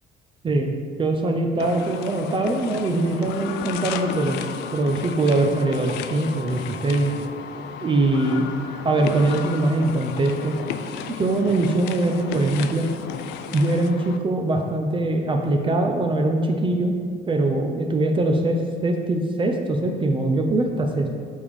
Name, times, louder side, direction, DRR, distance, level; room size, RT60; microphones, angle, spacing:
voice 1, 1.0-4.4 4.7-7.1 7.8-8.5 8.8-10.6 11.2-12.9 13.5-16.9 17.3-21.1, right 2 dB, 30° right, 3 dB, 0.6 m, -22 dB
sound 1, 1.6-14.2, left 7 dB, 90° left, 0.4 m, -34 dB
6.8 x 3.7 x 4.8 m, 2.1 s
cardioid pair, 110°, 17 cm